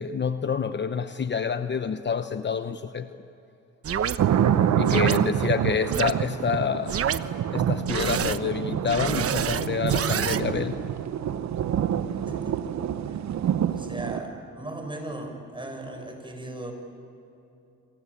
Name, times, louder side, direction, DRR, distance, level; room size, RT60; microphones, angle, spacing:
voice 1, 0.0-3.2 4.8-7.0 7.5-10.8, left 6 dB, 35° left, 10 dB, 1.0 m, -28 dB
sound 1, 3.8-4.2 4.9-5.2 5.9-6.1 6.9-7.2 7.9-8.4 8.9-10.4, right 8 dB, 50° right, 1.1 m, -27 dB
sound 2, 4.2-14.2, right 9 dB, 65° right, 1.3 m, -27 dB
voice 2, 12.3-12.7 13.1-13.2 13.7-16.7, right 2 dB, 15° right, 4 dB, 6.8 m, -38 dB
28.5 x 24.0 x 8.7 m, 2.8 s
cardioid pair, 90°, 30 cm